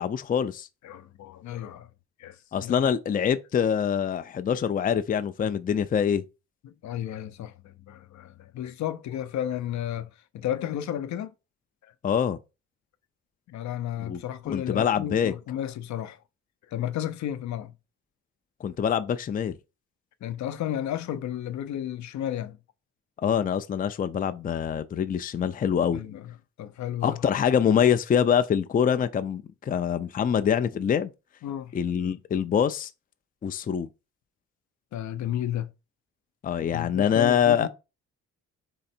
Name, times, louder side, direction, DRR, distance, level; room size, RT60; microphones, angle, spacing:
voice 1, 0.0-0.7 2.5-6.2 12.0-12.4 14.0-14.2 14.5-15.3 18.6-19.6 23.2-26.0 27.0-31.1 31.7-32.9 33.4-33.9 36.4-37.7, left 8 dB, 30° left, 0.4 m, -25 dB
voice 2, 0.8-1.9 2.2-2.9 6.6-11.3 13.5-16.2 16.7-17.7 20.2-22.6 25.9-27.2 31.4-31.8 34.9-35.7 36.7-37.7, left 11 dB, 65° left, 0.6 m, -33 dB
3.9 x 3.1 x 4.3 m
cardioid pair, 90°, 30 cm